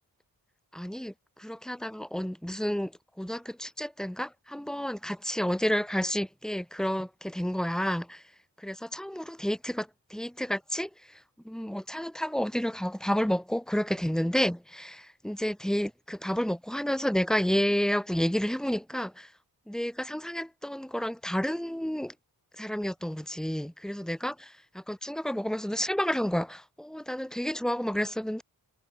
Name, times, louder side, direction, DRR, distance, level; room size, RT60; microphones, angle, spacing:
voice 1, 0.7-8.3 8.6-19.3 19.7-22.1 22.5-28.4, equal, ahead, 4.4 m, -30 dB
wide cardioid pair, 140°, 36 cm